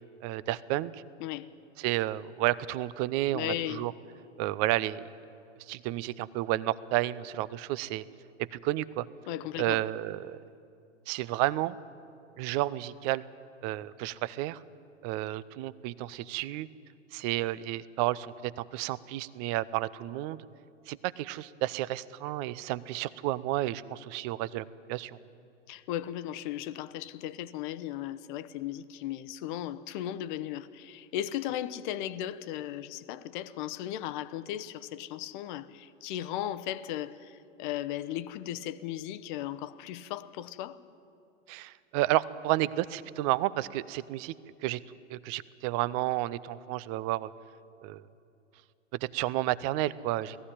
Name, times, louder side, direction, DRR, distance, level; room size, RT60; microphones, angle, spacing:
voice 1, 0.2-0.9 1.8-3.9 4.4-5.1 5.7-8.0 8.4-9.1 9.6-10.4 11.1-11.8 12.4-13.2 13.6-14.6 15.0-16.7 17.1-20.4 20.9-25.2 41.5-44.4 44.6-47.3 47.8-48.0 49.0-50.4, right 16 dB, 30° right, 0.5 m, -31 dB
voice 2, 3.3-3.9 9.3-9.8 25.7-40.8, left 12 dB, 40° left, 0.9 m, -36 dB
18.5 x 14.5 x 9.9 m
hypercardioid pair, 115°, 37 cm